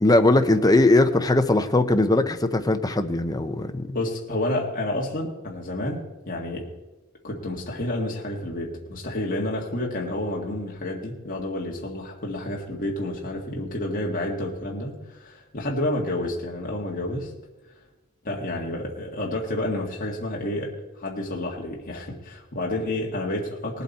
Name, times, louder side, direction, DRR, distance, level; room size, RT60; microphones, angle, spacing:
voice 1, 0.0-4.0, left 2 dB, 20° left, 8 dB, 0.8 m, -20 dB
voice 2, 3.9-6.7 7.2-17.3 18.2-23.8, left 1 dB, 45° left, -2 dB, 1.8 m, -30 dB
19.0 x 8.1 x 4.2 m, 1.1 s
head